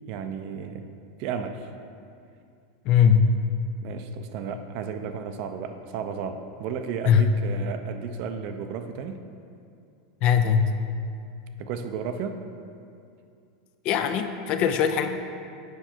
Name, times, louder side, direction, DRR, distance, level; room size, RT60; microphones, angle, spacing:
voice 1, 0.1-0.9 1.2-1.7 3.8-9.2 11.6-12.4, right 6 dB, 40° right, 7 dB, 0.5 m, -33 dB
voice 2, 2.9-3.4 7.0-7.3 10.2-10.8 13.8-15.1, left 7 dB, 35° left, 8 dB, 0.4 m, -20 dB
8.0 x 5.5 x 4.4 m, 2.5 s
supercardioid pair, 165°, 3 cm